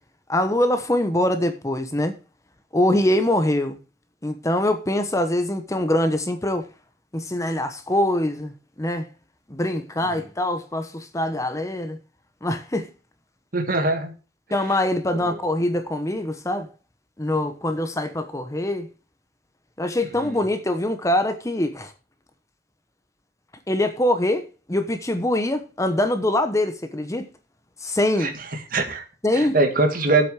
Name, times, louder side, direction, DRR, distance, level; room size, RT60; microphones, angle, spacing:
voice 1, 0.3-2.2 2.7-3.8 4.2-6.7 7.1-9.1 9.5-12.0 12.4-12.9 14.5-16.7 17.2-18.9 19.8-21.9 23.7-27.3 27.8-28.3 29.2-29.6, left 1 dB, 20° left, 1.0 m, -23 dB
voice 2, 13.5-14.1 15.2-15.4 20.2-20.4 28.2-28.3 28.7-29.0 29.3-30.3, right 2 dB, 55° right, 2.0 m, -22 dB
8.3 x 6.3 x 8.1 m
head